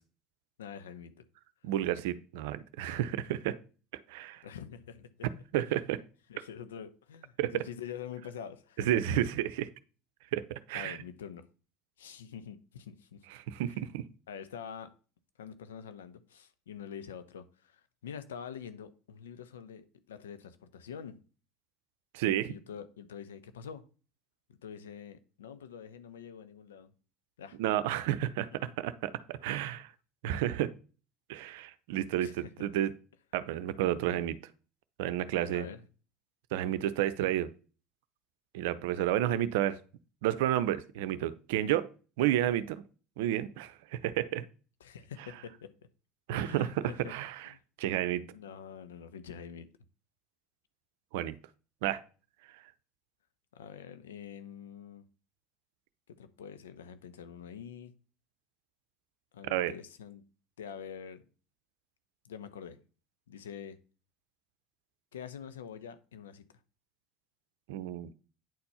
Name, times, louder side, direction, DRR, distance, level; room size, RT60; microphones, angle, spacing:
voice 1, 0.6-1.2 4.4-5.3 6.3-8.9 10.7-11.4 12.0-13.2 13.7-13.8 14.3-14.9 15.4-21.2 22.5-23.8 24.5-26.9 27.4-27.6 32.2-32.5 35.5-35.8 44.8-45.7 46.3-47.2 47.4-47.6 48.3-49.7 53.5-55.0 56.1-58.0 59.3-60.2 60.6-61.3 62.2-62.8 63.3-63.8 65.1-66.4, left 8 dB, 85° left, 0.8 m, -45 dB
voice 2, 1.6-3.6 4.1-4.4 5.5-6.0 7.4-7.6 8.8-9.7 10.3-11.0 13.5-14.1 22.1-22.5 27.6-29.9 30.2-30.7 31.3-32.9 33.3-34.4 35.0-35.7 36.5-37.5 38.5-39.8 40.2-41.9 42.2-42.8 43.2-44.4 46.3-47.5 47.8-48.2 51.1-51.4 51.8-52.0 59.4-59.7 67.7-68.1, right 12 dB, 75° right, 0.6 m, -31 dB
9.3 x 4.3 x 5.5 m
hypercardioid pair, 70°, 0 cm